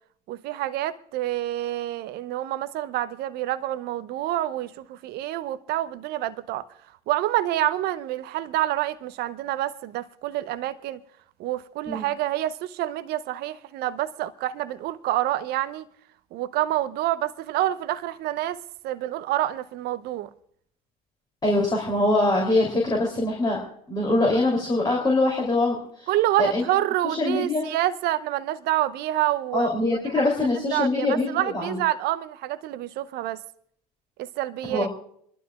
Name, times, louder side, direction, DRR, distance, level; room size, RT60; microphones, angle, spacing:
voice 1, 0.3-6.6 7.1-11.0 11.4-15.9 16.3-20.3 26.1-29.7 30.7-33.4 34.2-34.9, right 14 dB, 50° right, 0.7 m, -27 dB
voice 2, 21.4-23.6 23.9-26.1 26.4-26.6 27.0-27.7 29.5-31.8 34.7-34.9, left 2 dB, 20° left, 3.2 m, -23 dB
28.0 x 12.0 x 2.4 m
hypercardioid pair, 80°, 21 cm